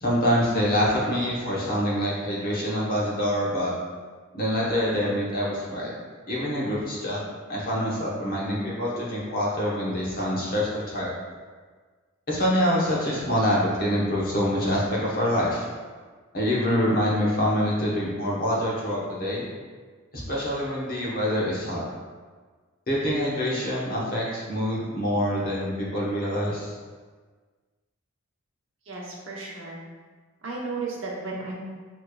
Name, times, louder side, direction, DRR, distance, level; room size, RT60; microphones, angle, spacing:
voice 1, 0.0-3.7 4.3-5.9 6.3-7.2 7.5-11.1 12.3-15.6 16.3-19.4 20.1-21.8 22.9-26.7, equal, 40° left, -5 dB, 1.0 m, -25 dB
voice 2, 28.9-29.8 30.4-31.6, right 3 dB, 60° right, -3 dB, 1.0 m, -34 dB
6.4 x 3.1 x 2.3 m, 1.5 s
head